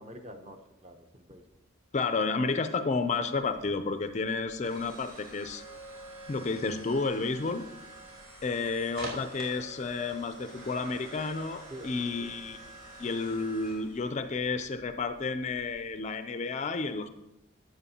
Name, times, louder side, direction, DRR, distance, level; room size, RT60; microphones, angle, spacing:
voice 1, 0.0-1.4 11.7-12.3, equal, 30° right, 5 dB, 0.8 m, -47 dB
voice 2, 1.9-5.6 6.3-7.7 8.4-12.6 13.0-17.1, left 4 dB, 35° left, 9 dB, 0.4 m, -31 dB
sound 1, 3.5-16.1, right 1 dB, 85° right, 3.3 m, -48 dB
12.5 x 7.8 x 2.8 m, 0.93 s
head